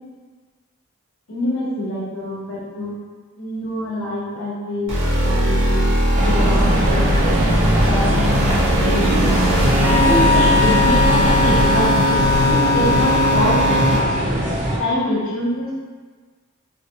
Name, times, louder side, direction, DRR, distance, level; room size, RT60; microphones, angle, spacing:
voice 1, 1.3-2.9 3.4-4.9 5.2-5.9 6.2-7.3 7.8-9.4 9.9-14.3 14.8-15.7, left 1 dB, 70° left, -7 dB, 0.9 m, -25 dB
sound 1, 4.9-14.0, equal, 60° right, 1.0 m, -19 dB
sound 2, 6.1-14.8, right 1 dB, 35° right, 0.5 m, -22 dB
Wind instrument woodwind instrument, 9.8-14.2, left 3 dB, 35° left, 0.3 m, -20 dB
2.9 x 2.6 x 2.7 m, 1.4 s
head